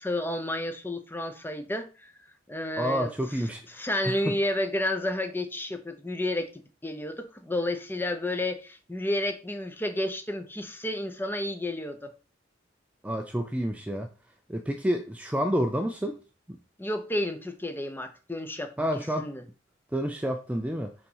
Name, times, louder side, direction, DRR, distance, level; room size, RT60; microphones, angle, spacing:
voice 1, 0.0-2.1 2.5-3.1 3.7-12.1 16.8-19.4, left 1 dB, 10° left, 0.8 m, -31 dB
voice 2, 2.8-4.4 13.0-14.1 14.5-16.2 16.5-16.6 18.8-19.3 19.9-20.9, equal, 5° right, 0.5 m, -29 dB
5.3 x 4.2 x 5.6 m
head